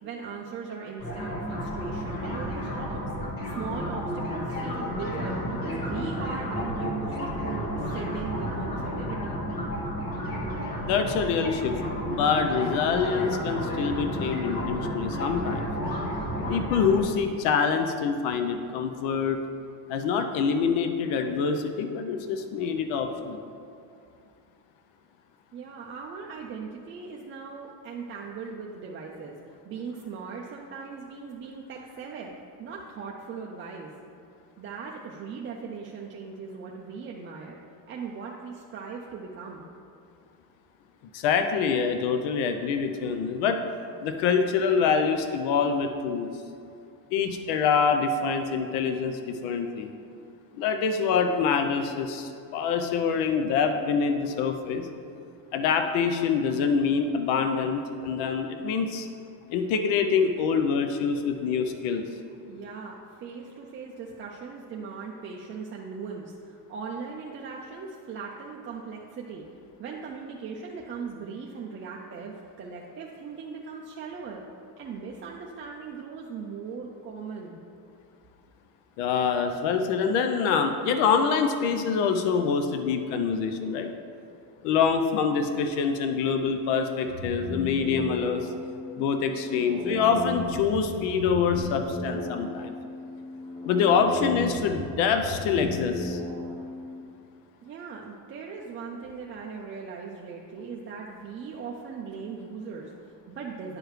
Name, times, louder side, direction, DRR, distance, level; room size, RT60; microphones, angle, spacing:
voice 1, 0.0-7.2 7.4-9.4 25.5-32.3 32.6-33.9 34.6-37.6 37.9-39.7 62.5-69.5 69.8-74.4 74.8-77.6 97.6-103.8, right 5 dB, 30° right, -2 dB, 0.4 m, -39 dB
sound 1, 1.0-17.0, equal, 45° left, 1.6 m, -32 dB
voice 2, 10.8-11.7 12.1-15.7 16.5-19.4 19.9-23.4 41.1-43.6 44.0-46.3 47.1-50.0 50.6-54.9 55.5-59.1 59.5-62.0 79.0-83.9 84.6-88.5 89.0-92.7 93.6-96.2, left 6 dB, 85° left, 6 dB, 0.7 m, -25 dB
sound 2, 87.0-97.0, left 2 dB, 10° left, 1.1 m, -36 dB
10.5 x 4.8 x 3.1 m, 2.4 s
cardioid pair, 135°, 46 cm